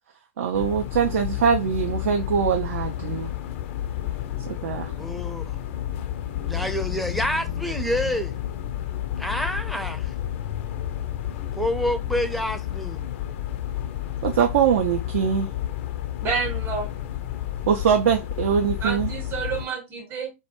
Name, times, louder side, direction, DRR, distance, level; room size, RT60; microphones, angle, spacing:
voice 1, 0.4-3.3 4.5-4.9 14.2-15.5 17.7-19.1, right 7 dB, 65° right, 0.4 m, -22 dB
sound 1, 0.5-19.7, left 12 dB, 60° left, 0.4 m, -31 dB
voice 2, 4.9-5.6 6.4-8.3 9.2-10.1 11.5-13.0, left 1 dB, ahead, 0.5 m, -28 dB
voice 3, 16.2-16.9 18.8-20.3, right 5 dB, 30° right, 0.8 m, -29 dB
2.2 x 2.1 x 2.8 m
figure-of-eight pair, 90°, 8 cm